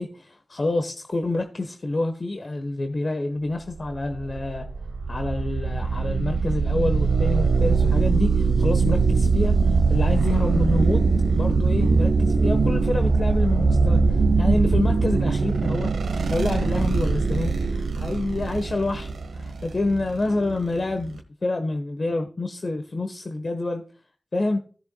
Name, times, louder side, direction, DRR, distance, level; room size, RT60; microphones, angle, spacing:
voice 1, 0.0-4.7 5.1-11.0 11.3-23.8 24.3-24.6, left 2 dB, 50° left, 1.2 m, -27 dB
sound 1, 3.8-21.2, right 4 dB, 85° right, 1.0 m, -22 dB
16.5 x 6.9 x 2.3 m
cardioid pair, 45°, 0 cm